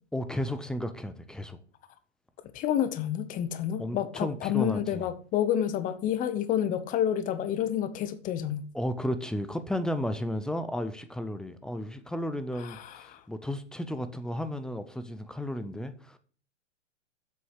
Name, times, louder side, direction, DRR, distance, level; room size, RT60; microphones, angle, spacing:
voice 1, 0.1-1.6 3.8-5.1 8.7-16.2, equal, ahead, 0.5 m, -33 dB
voice 2, 2.5-8.7 12.9-13.0, left 10 dB, 20° left, 0.9 m, -29 dB
8.0 x 6.1 x 8.0 m
hypercardioid pair, 135°, 36 cm